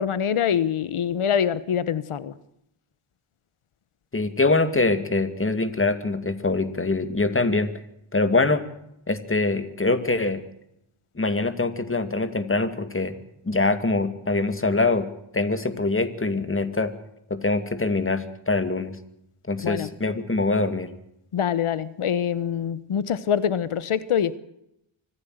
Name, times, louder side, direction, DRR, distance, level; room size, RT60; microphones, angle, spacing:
voice 1, 0.0-2.3 19.6-19.9 21.3-24.4, left 8 dB, 85° left, 15 dB, 1.2 m, -24 dB
voice 2, 4.1-7.7 8.1-8.6 9.1-10.4 11.2-13.1 13.4-15.1 15.3-16.9 17.3-19.0 19.5-20.9, left 3 dB, 25° left, 10 dB, 2.4 m, -24 dB
25.0 x 15.0 x 8.0 m, 0.80 s
wide cardioid pair, 85°, 49 cm